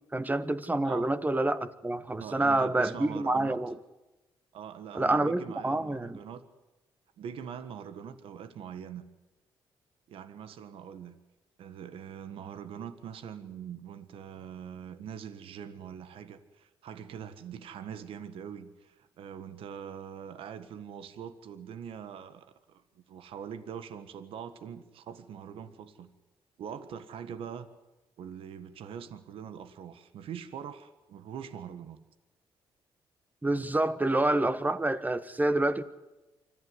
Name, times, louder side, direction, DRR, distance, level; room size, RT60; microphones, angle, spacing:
voice 1, 0.1-3.7 4.9-6.2 33.4-35.8, right 2 dB, 20° right, 13 dB, 1.4 m, -27 dB
voice 2, 2.2-3.6 4.5-6.4 7.2-9.1 10.1-11.2 11.6-26.1 26.6-27.7 28.2-32.0, right 8 dB, 75° right, 12 dB, 1.6 m, -43 dB
25.0 x 14.5 x 9.8 m, 1.0 s
cardioid pair, 70°, 9 cm